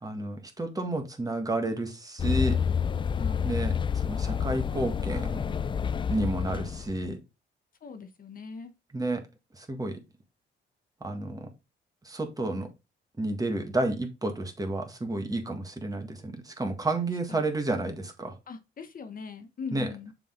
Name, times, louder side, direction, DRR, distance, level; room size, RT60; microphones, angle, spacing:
voice 1, 0.0-2.6 3.4-5.4 6.1-7.2 8.9-9.2 9.6-10.0 11.0-11.5 12.0-12.7 13.2-18.3 19.7-19.9, right 2 dB, 20° right, 1.6 m, -31 dB
sound 1, 2.2-7.1, left 7 dB, 25° left, 0.3 m, -29 dB
voice 2, 3.1-3.6 7.8-8.7 17.3-17.4 18.5-20.1, left 5 dB, 45° left, 0.9 m, -40 dB
6.8 x 3.8 x 3.8 m
cardioid pair, 90°, 20 cm